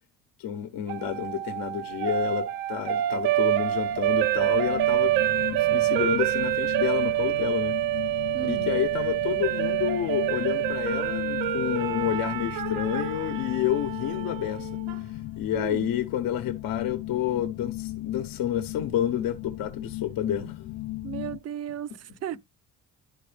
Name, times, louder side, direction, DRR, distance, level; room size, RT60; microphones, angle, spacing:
voice 1, 0.4-7.8 8.4-14.7 15.4-20.7, left 10 dB, 75° left, 1.0 m, -29 dB
sound 1, 0.9-15.0, right 14 dB, 85° right, 0.8 m, -27 dB
sound 2, 3.2-21.4, left 17 dB, 50° left, 0.6 m, -36 dB
voice 2, 8.3-8.8 15.5-15.9 21.0-22.4, right 10 dB, 50° right, 0.5 m, -35 dB
11.0 x 4.0 x 3.3 m
cardioid pair, 100°, 34 cm